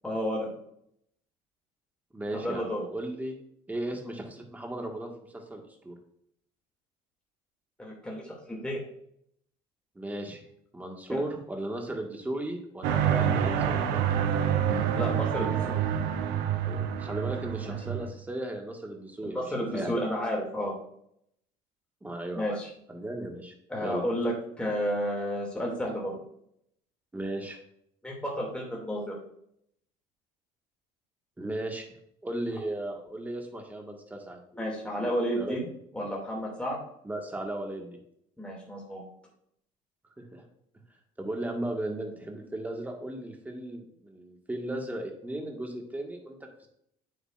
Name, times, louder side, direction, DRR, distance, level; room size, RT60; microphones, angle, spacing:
voice 1, 0.0-0.5 2.4-2.8 7.8-8.8 11.1-11.2 15.0-15.8 17.6-17.7 19.2-20.7 22.3-22.7 23.7-26.2 28.0-29.2 34.5-35.7 35.9-36.8 38.4-39.0, equal, 5° left, -3 dB, 2.4 m, -31 dB
voice 2, 2.1-3.4 3.7-6.0 10.0-10.5 10.7-14.1 16.6-19.9 22.0-22.6 22.9-24.0 27.1-27.6 31.4-31.9 32.2-34.4 35.0-35.6 37.0-38.0 40.2-40.4 41.2-46.7, right 1 dB, 10° right, 2 dB, 1.6 m, -36 dB
sound 1, 12.8-18.1, right 9 dB, 90° right, 0.8 m, -27 dB
8.7 x 7.5 x 2.5 m, 0.72 s
cardioid pair, 110°, 16 cm